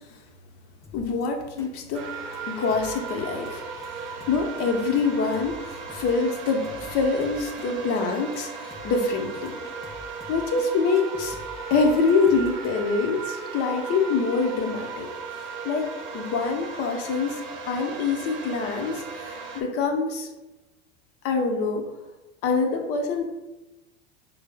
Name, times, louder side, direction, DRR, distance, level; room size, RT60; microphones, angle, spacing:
Drum kit, 0.8-1.2 1.6-1.7 2.0-2.1 2.3-2.4 2.7-3.2 3.5-3.6 3.8-3.9 4.2-4.7 5.0-5.1 5.3-6.2 6.5-7.7 8.0-8.1 8.3-8.4 8.7-9.2 9.5-10.7 11.0-12.7, left 4 dB, 10° left, 0.3 m, -46 dB
voice 1, 0.9-2.1 2.5-3.6 3.9-9.5 10.3-11.4 11.7-15.1 15.6-15.9 16.1-17.4 17.7-20.3 21.2-21.9 22.4-23.2, left 4 dB, 45° left, 3 dB, 0.7 m, -25 dB
sound 1, 1.9-19.6, right 4 dB, 35° right, 0.6 m, -37 dB
4.4 x 2.0 x 3.3 m, 1.1 s
hypercardioid pair, 105°, 33 cm